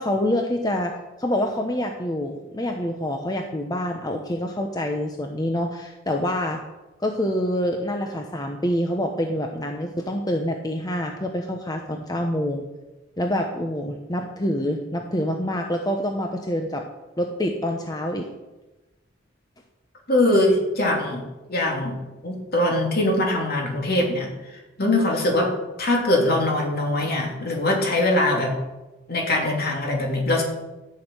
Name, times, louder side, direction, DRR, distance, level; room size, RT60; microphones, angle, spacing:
voice 1, 0.0-6.6 7.0-12.6 13.2-16.8 17.2-18.3, left 1 dB, 20° left, 3 dB, 1.0 m, -26 dB
voice 2, 20.1-21.2 21.5-24.3 24.8-25.5 25.8-28.6 29.1-30.4, left 1 dB, 50° left, 0 dB, 2.9 m, -22 dB
13.0 x 6.4 x 9.1 m, 1.1 s
head